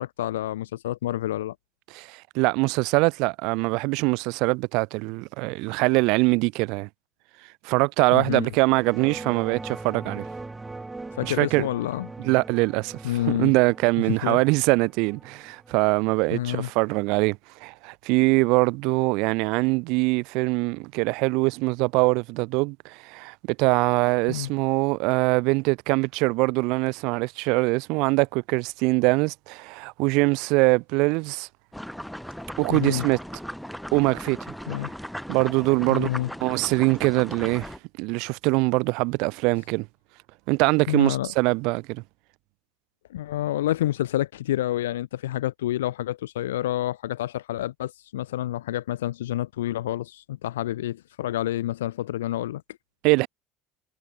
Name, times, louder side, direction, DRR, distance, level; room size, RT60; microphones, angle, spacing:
voice 1, 0.0-1.6 8.1-8.5 11.1-12.1 13.0-13.5 14.1-14.4 16.3-16.7 24.3-24.5 32.7-33.1 34.7-34.9 35.9-36.3 40.9-41.3 43.1-52.6, left 13 dB, 85° left, 3.6 m, -28 dB
voice 2, 1.9-6.9 7.6-10.3 11.2-11.6 12.2-13.0 13.3-31.5 32.6-33.2 33.9-34.4 35.3-36.1 36.4-37.7 38.0-39.9 40.5-42.0 53.0-53.3, right 27 dB, 70° right, 4.0 m, -23 dB
sound 1, 8.7-17.3, right 3 dB, 15° right, 7.5 m, -41 dB
sound 2, 31.7-37.8, equal, ahead, 4.3 m, -37 dB
hypercardioid pair, 70°, 0 cm